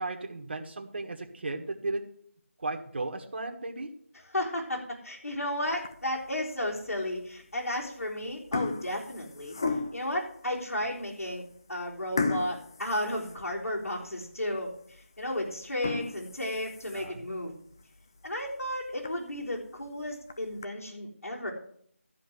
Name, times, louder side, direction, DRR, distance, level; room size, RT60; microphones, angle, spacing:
voice 1, 0.0-2.0 2.6-3.9 16.9-17.3, right 2 dB, 45° right, 4 dB, 1.6 m, -35 dB
voice 2, 4.1-9.5 9.9-11.4 11.7-17.6 18.2-21.5, left 1 dB, 85° left, -4 dB, 4.0 m, -33 dB
sound 1, 5.7-6.2 6.8-6.9 7.8-8.0 8.3-10.2 10.8-10.9 11.2-11.4 12.2-13.9 14.3-14.4 14.9-15.0 15.6-17.3 17.7-17.8 18.2-18.3 18.6-18.7 19.0-19.1 20.1-20.7, left 3 dB, 15° left, 0.3 m, -34 dB
13.5 x 5.0 x 7.9 m, 0.64 s
figure-of-eight pair, 170°, 8 cm